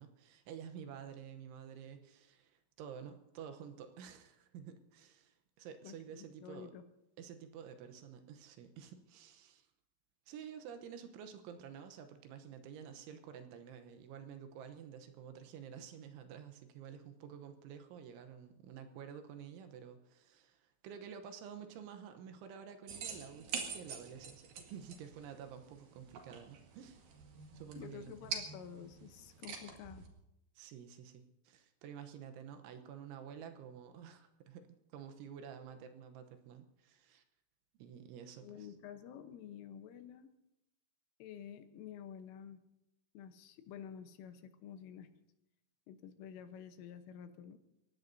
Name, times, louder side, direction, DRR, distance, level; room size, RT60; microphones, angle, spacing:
voice 1, 0.0-6.7 7.2-9.7 10.3-27.0 27.5-28.1 30.6-37.2 37.8-38.7, right 8 dB, 75° right, 7 dB, 3.2 m, -50 dB
voice 2, 5.8-6.9 27.8-30.1 38.4-40.3 41.2-42.6 43.2-45.1 45.9-47.6, left 8 dB, 80° left, 8 dB, 3.5 m, -50 dB
sound 1, 22.9-30.1, right 6 dB, 55° right, 3.2 m, -46 dB
29.5 x 16.0 x 2.7 m, 0.87 s
omnidirectional pair, 5.8 m